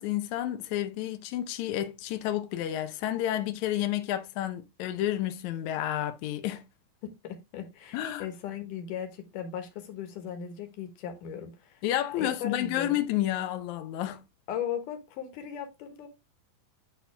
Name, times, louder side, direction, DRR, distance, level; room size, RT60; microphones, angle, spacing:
voice 1, 0.0-6.6 7.9-8.3 11.8-14.2, left 12 dB, 80° left, 1.6 m, -30 dB
voice 2, 7.0-11.8 12.2-13.0 14.5-16.1, left 9 dB, 65° left, 2.6 m, -37 dB
10.5 x 3.7 x 3.4 m
omnidirectional pair, 4.3 m